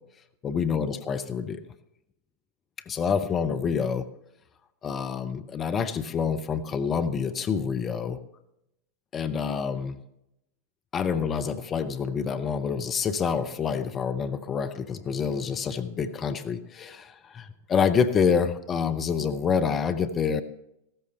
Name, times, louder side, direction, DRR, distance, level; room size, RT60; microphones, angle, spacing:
voice 1, 0.4-1.6 2.9-4.1 4.8-8.2 9.1-10.0 10.9-20.4, left 6 dB, 25° left, 10 dB, 0.7 m, -27 dB
15.5 x 13.5 x 3.4 m, 0.83 s
figure-of-eight pair, 90°, 0 cm